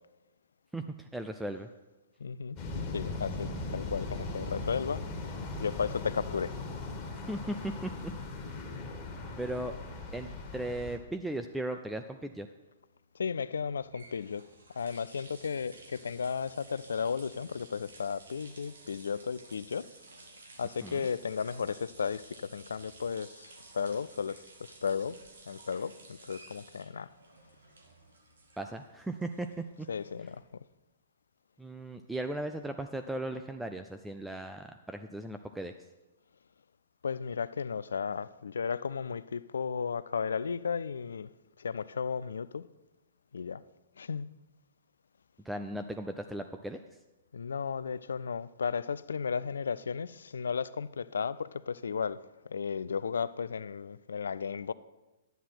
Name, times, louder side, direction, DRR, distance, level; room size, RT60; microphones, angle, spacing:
voice 1, 0.7-1.7 7.3-7.9 8.4-8.6 9.4-9.7 10.1-12.5 20.8-21.1 28.6-29.9 31.6-35.7 45.4-46.8, right 1 dB, 5° right, 0.4 m, -37 dB
voice 2, 2.2-2.6 2.9-5.0 5.6-6.5 13.2-14.4 14.8-19.9 20.6-24.4 24.8-25.2 25.5-27.1 29.9-30.6 37.0-41.3 41.6-42.7 43.3-43.6 44.0-44.3 47.3-52.2 52.5-54.7, left 6 dB, 75° left, 0.4 m, -34 dB
sound 1, 2.6-11.0, left 3 dB, 30° left, 1.7 m, -39 dB
sound 2, 13.7-30.6, right 3 dB, 75° right, 1.8 m, -55 dB
11.0 x 9.2 x 4.5 m
hypercardioid pair, 120°, 0 cm